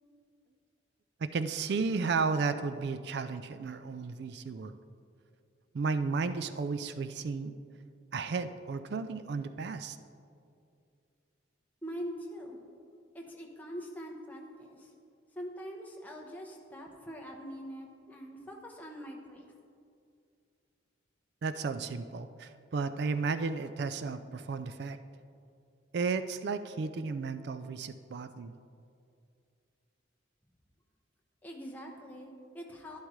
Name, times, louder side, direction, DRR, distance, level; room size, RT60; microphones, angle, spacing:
voice 1, 1.2-4.8 5.7-7.5 8.1-10.0 21.4-25.0 25.9-28.5, right 4 dB, 55° right, 11 dB, 0.4 m, -33 dB
voice 2, 11.8-12.6 13.1-14.9 15.4-19.5 31.4-33.0, equal, 10° left, 0 dB, 0.8 m, -43 dB
11.5 x 10.5 x 3.2 m, 2.4 s
head